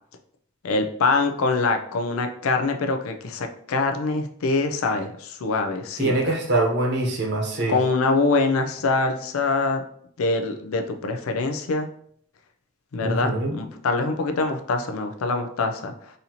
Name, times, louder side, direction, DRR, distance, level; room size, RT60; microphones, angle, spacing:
voice 1, 0.6-6.4 7.7-9.8 10.2-11.9 12.9-16.1, left 3 dB, 85° left, 5 dB, 0.5 m, -24 dB
voice 2, 6.0-7.7 13.0-13.6, right 2 dB, 55° right, 1 dB, 0.8 m, -23 dB
4.1 x 2.7 x 2.8 m, 0.64 s
head